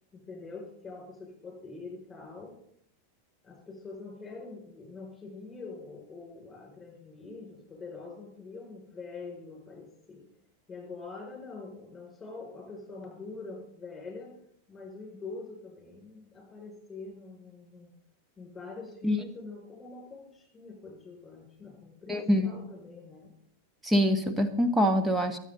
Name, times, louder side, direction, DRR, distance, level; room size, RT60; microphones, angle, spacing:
voice 1, 0.1-2.6 3.4-10.3 10.7-14.3 14.7-17.9 18.4-23.3, left 3 dB, 15° left, 0 dB, 6.5 m, -44 dB
voice 2, 22.1-22.5 23.8-25.4, equal, 10° right, 7 dB, 1.5 m, -24 dB
23.5 x 9.1 x 4.2 m, 0.69 s
figure-of-eight pair, 90°, 0 cm